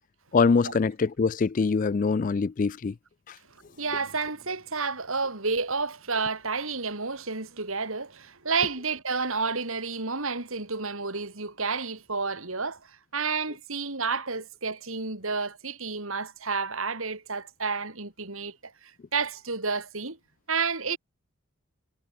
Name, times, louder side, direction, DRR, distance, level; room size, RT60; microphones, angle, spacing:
voice 1, 0.3-2.9 3.3-3.4, left 4 dB, 35° left, 0.3 m, -24 dB
voice 2, 3.8-20.2 20.5-21.0, right 4 dB, 70° right, 3.4 m, -30 dB
head